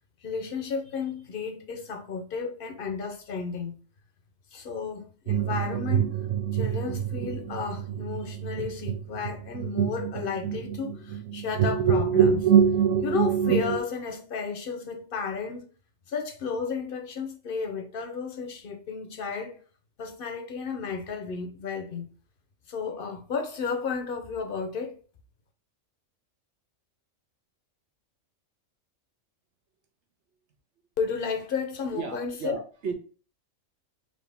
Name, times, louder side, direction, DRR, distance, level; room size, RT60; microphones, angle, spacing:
voice 1, 0.2-3.8 4.5-6.1 6.5-12.5 13.0-15.7 16.1-19.6 20.0-22.1 22.7-25.0 31.0-32.6, left 5 dB, 50° left, 0.8 m, -33 dB
sound 1, 5.3-13.8, right 8 dB, 85° right, 1.1 m, -25 dB
voice 2, 31.9-32.9, right 5 dB, 60° right, 1.1 m, -34 dB
4.0 x 2.9 x 3.4 m
omnidirectional pair, 1.3 m